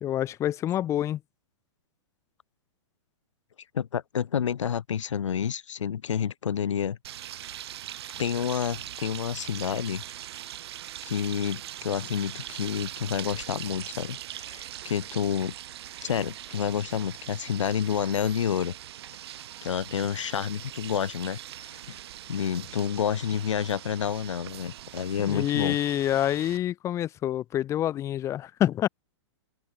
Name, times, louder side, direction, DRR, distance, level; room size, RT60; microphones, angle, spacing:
voice 1, 0.0-1.2 25.3-28.9, left 12 dB, 20° left, 1.9 m, -27 dB
voice 2, 3.7-7.0 8.1-10.0 11.0-15.5 16.0-18.7 19.6-21.4 21.7-22.0 22.3-25.8, left 8 dB, 90° left, 3.2 m, -29 dB
sound 1, 7.0-26.6, right 12 dB, 60° right, 6.7 m, -41 dB
open air
hypercardioid pair, 160°, 15 cm